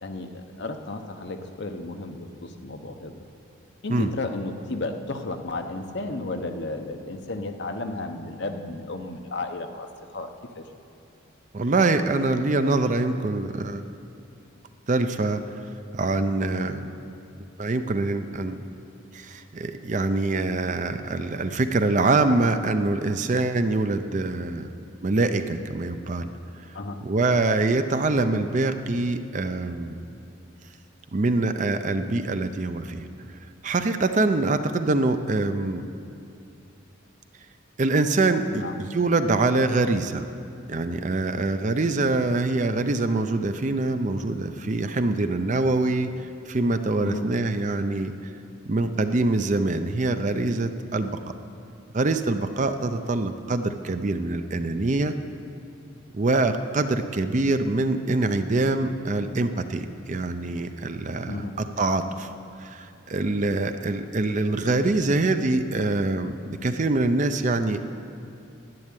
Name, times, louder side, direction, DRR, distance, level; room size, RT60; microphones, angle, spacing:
voice 1, 0.0-3.2 3.8-9.9 10.1-10.6 16.5-16.7 26.7-27.0 38.5-38.8 47.0-47.3 61.3-61.6 63.8-64.0, left 2 dB, 55° left, 6 dB, 0.9 m, -33 dB
voice 2, 11.5-13.8 14.9-15.6 15.9-16.8 17.6-18.6 19.1-24.7 25.0-26.3 27.0-30.0 31.1-33.1 33.6-35.8 37.8-40.2 40.7-48.1 48.7-51.2 51.9-55.1 56.1-62.3 62.6-67.8, right 2 dB, 35° right, 9 dB, 0.5 m, -24 dB
10.5 x 8.6 x 9.8 m, 2.7 s
head